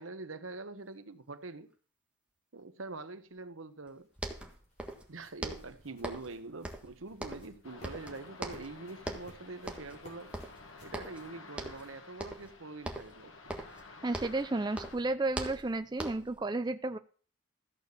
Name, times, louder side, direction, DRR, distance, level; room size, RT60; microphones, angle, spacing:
voice 1, 0.0-1.7 2.5-4.1 5.1-10.3 10.8-13.3, right 3 dB, 85° right, 1.1 m, -44 dB
sound 1, 3.7-12.2, equal, 35° left, 4.5 m, -61 dB
sound 2, 3.9-4.0 4.2-5.1 5.4-6.4 6.6-7.6 7.8-8.7 9.0-9.3 9.7-10.0 10.3-11.3 11.6-11.9 12.2-12.5 12.8-14.5 14.7-16.4, right 1 dB, 5° right, 1.5 m, -41 dB
sound 3, 7.6-15.0, left 3 dB, 85° left, 1.9 m, -52 dB
voice 2, 14.0-17.0, right 2 dB, 20° right, 0.5 m, -32 dB
14.0 x 6.8 x 6.8 m
head